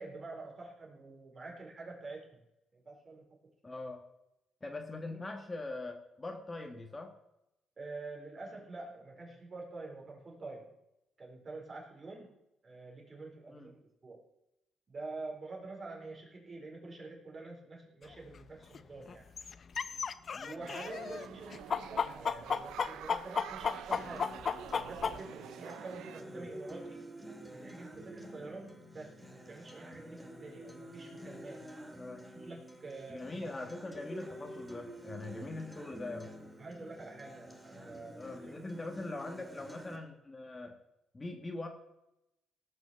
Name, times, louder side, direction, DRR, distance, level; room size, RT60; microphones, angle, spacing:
voice 1, 0.0-2.4 2.7-3.2 5.0-5.2 7.8-10.7 11.2-12.4 12.6-14.2 14.9-19.3 20.4-24.3 24.9-27.1 27.5-31.7 32.3-33.7 36.6-38.6, right 3 dB, 35° right, -1 dB, 4.6 m, -47 dB
voice 2, 3.6-4.0 4.6-7.1 13.5-13.7 20.3-20.6 26.4-26.5 32.0-32.2 33.1-36.3 37.8-40.7 41.1-41.7, left 2 dB, 25° left, 3 dB, 1.8 m, -42 dB
sound 1, 18.1-18.2 18.7-18.8 19.1-21.3 21.5-25.2, left 6 dB, 45° left, 0.7 m, -33 dB
sound 2, 20.6-26.2, right 11 dB, 85° right, 0.5 m, -47 dB
Acoustic guitar, 24.0-40.0, equal, 10° right, 2.4 m, -49 dB
18.0 x 6.2 x 7.0 m, 0.87 s
cardioid pair, 90°, 0 cm